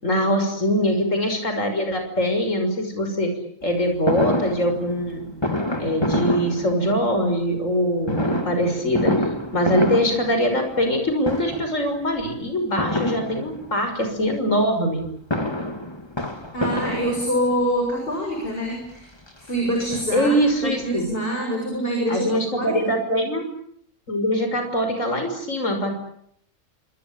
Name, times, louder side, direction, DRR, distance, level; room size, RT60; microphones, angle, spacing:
voice 1, 0.0-3.3 3.6-5.3 5.8-9.1 9.5-15.0 20.1-21.1 22.1-23.5 24.1-25.9, equal, 70° left, 5 dB, 6.5 m, -23 dB
Fireworks, 4.1-7.3 8.0-11.0 11.2-11.8 12.8-13.9 15.0-17.7 18.4-18.5 18.8-18.9 19.3-20.5 20.8-20.9 21.1-21.2, left 1 dB, 20° left, 2.9 m, -27 dB
voice 2, 16.5-19.1 19.4-20.4 20.6-22.3 22.6-23.0, equal, 45° left, 1 dB, 7.9 m, -25 dB
27.5 x 26.5 x 7.4 m, 0.69 s
omnidirectional pair, 1.4 m